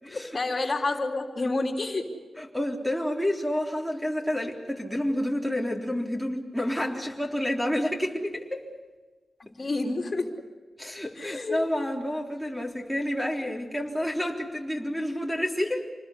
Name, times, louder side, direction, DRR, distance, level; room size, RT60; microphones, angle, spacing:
voice 1, 0.1-2.1 9.4-10.4 11.2-11.6, left 2 dB, 40° left, 2 dB, 3.2 m, -29 dB
voice 2, 2.4-8.7 10.8-15.9, left 1 dB, ahead, 1 dB, 3.8 m, -29 dB
27.5 x 20.5 x 8.2 m, 1.3 s
wide cardioid pair, 100°, 0 cm